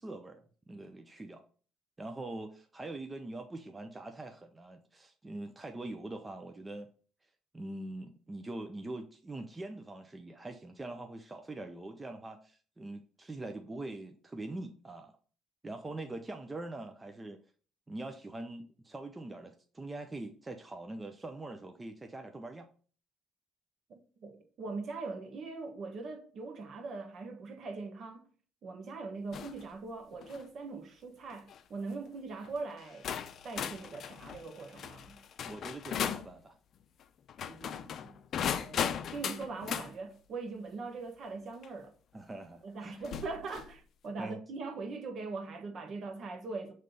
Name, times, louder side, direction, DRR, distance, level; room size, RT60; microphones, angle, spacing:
voice 1, 0.0-1.4 2.0-6.9 7.5-15.1 15.6-17.4 17.9-22.7 35.4-36.5 42.1-43.0 44.2-44.4, right 2 dB, 20° right, 0.7 m, -43 dB
voice 2, 23.9-28.2 28.6-33.1 33.4-35.2 37.4-38.2 38.4-41.9 42.6-46.7, right 3 dB, 55° right, 1.3 m, -41 dB
sound 1, 29.3-29.6 30.1-30.5 31.3-31.6 32.4-32.5 33.0-36.3 37.3-39.9 41.6-41.7 43.0-43.7, left 8 dB, 55° left, 0.5 m, -37 dB
6.2 x 3.2 x 5.2 m
cardioid pair, 100°, 0 cm